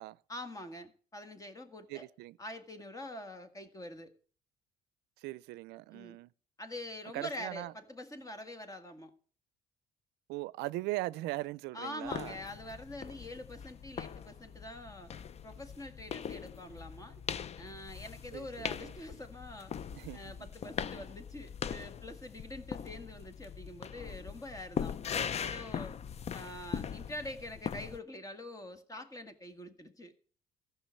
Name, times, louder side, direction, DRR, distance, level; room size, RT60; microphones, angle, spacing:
voice 1, 0.3-2.1 2.4-4.1 5.9-6.2 6.6-9.1 11.7-15.1 15.4-17.2 17.6-19.7 20.1-25.0 25.4-26.0 26.3-30.1, left 1 dB, 20° left, 1.7 m, -45 dB
voice 2, 1.9-2.4 5.2-6.3 7.1-7.7 10.3-12.4 18.3-18.9 19.9-20.5, right 19 dB, 90° right, 0.5 m, -40 dB
sound 1, 12.0-28.0, left 7 dB, 40° left, 0.5 m, -41 dB
14.5 x 5.9 x 8.3 m
cardioid pair, 110°, 17 cm